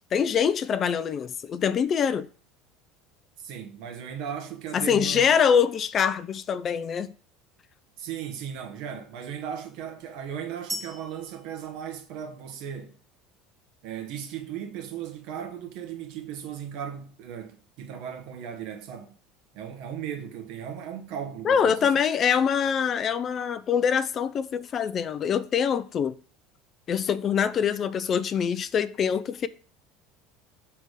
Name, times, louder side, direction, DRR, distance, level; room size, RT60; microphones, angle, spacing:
voice 1, 0.1-2.3 4.7-7.1 21.4-26.1 26.9-29.5, left 7 dB, 40° left, 0.4 m, -24 dB
voice 2, 3.4-5.4 8.0-13.0 13.8-19.2 19.5-21.9, right 8 dB, 65° right, 1.1 m, -37 dB
sound 1, 10.7-12.6, right 1 dB, 20° right, 1.3 m, -39 dB
6.4 x 3.4 x 4.8 m
hypercardioid pair, 75°, 0 cm